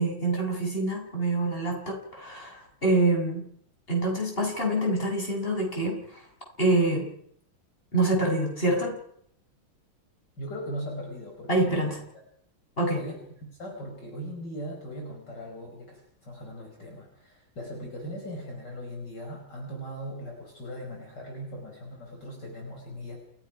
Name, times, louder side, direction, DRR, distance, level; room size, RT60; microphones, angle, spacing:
voice 1, 0.0-3.4 3.9-6.2 6.6-7.1 7.9-9.0 11.5-12.0 12.8-13.0, right 2 dB, 25° left, 0 dB, 7.9 m, -26 dB
voice 2, 10.4-12.0 13.0-23.2, equal, 55° left, 0 dB, 5.7 m, -39 dB
29.5 x 19.0 x 6.0 m, 0.68 s
omnidirectional pair, 2.2 m